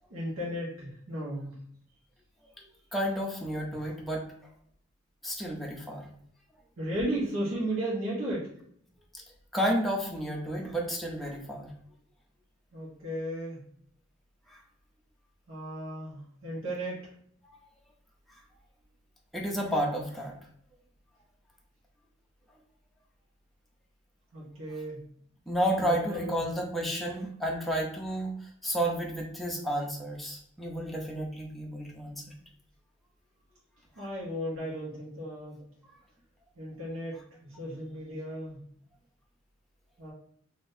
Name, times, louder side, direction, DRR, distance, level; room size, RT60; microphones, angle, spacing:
voice 1, 0.1-1.6 3.7-3.8 6.8-8.5 12.7-13.6 15.5-17.1 24.3-25.0 25.8-26.4 34.0-35.6 36.6-37.2 37.5-38.6 40.0-40.1, right 1 dB, 75° right, -7 dB, 1.0 m, -35 dB
voice 2, 2.9-4.2 5.2-6.0 9.5-11.7 14.5-14.6 19.3-20.3 25.5-32.2, equal, ahead, -2 dB, 0.5 m, -31 dB
3.7 x 2.6 x 2.6 m, 0.64 s
head